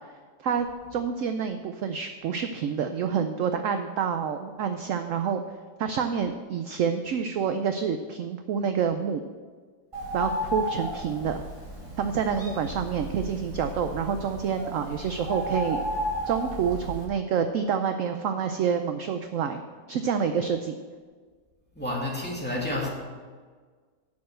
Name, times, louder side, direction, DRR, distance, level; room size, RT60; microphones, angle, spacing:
voice 1, 0.9-5.4 5.8-9.2 10.1-11.4 12.0-15.8 16.3-19.6 19.9-20.8, right 7 dB, 70° right, 7 dB, 0.8 m, -28 dB
Bird, 9.9-17.0, equal, 15° right, 2.6 m, -34 dB
voice 2, 21.8-22.9, left 1 dB, 5° left, -4 dB, 2.2 m, -30 dB
8.6 x 6.7 x 7.6 m, 1.5 s
omnidirectional pair, 1.8 m